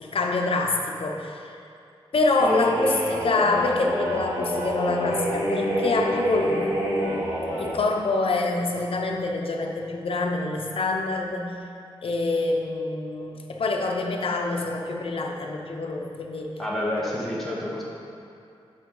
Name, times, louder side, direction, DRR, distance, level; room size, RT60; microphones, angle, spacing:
voice 1, 0.0-1.5 2.1-6.7 7.6-11.5 12.0-16.5, left 3 dB, 65° left, 1 dB, 0.8 m, -26 dB
sound 1, 2.4-7.8, equal, 25° right, 2.1 m, -27 dB
voice 2, 16.6-17.8, left 1 dB, ahead, -6 dB, 1.2 m, -28 dB
11.0 x 5.6 x 3.9 m, 2.5 s
wide cardioid pair, 145°, 10 cm